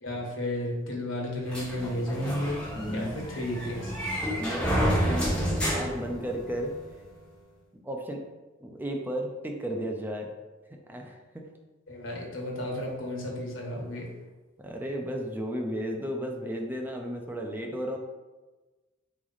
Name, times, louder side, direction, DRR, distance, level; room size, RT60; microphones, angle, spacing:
voice 1, 0.0-2.6 2.9-3.9 11.9-14.1, left 1 dB, 85° left, -1 dB, 1.1 m, -33 dB
sound 1, 1.5-6.8, equal, 5° left, 1.1 m, -30 dB
voice 2, 2.7-3.2 4.4-6.7 7.8-8.2 8.6-10.3 10.9-11.2 14.6-18.0, equal, 10° right, 2 dB, 0.4 m, -34 dB
4.0 x 3.1 x 3.9 m, 1.2 s
head